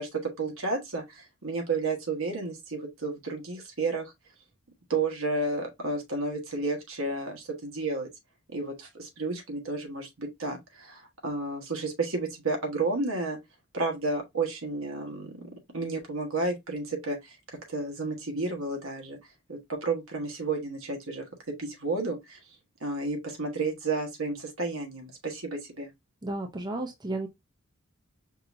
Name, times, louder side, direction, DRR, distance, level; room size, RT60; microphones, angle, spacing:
voice 1, 0.0-4.1 4.9-8.1 8.5-13.4 13.7-17.3 17.7-19.2 19.5-21.2 21.6-22.4 22.8-25.9, right 3 dB, 80° right, 1.4 m, -32 dB
voice 2, 26.2-27.3, right 2 dB, 20° right, 0.6 m, -33 dB
5.4 x 2.8 x 2.6 m
head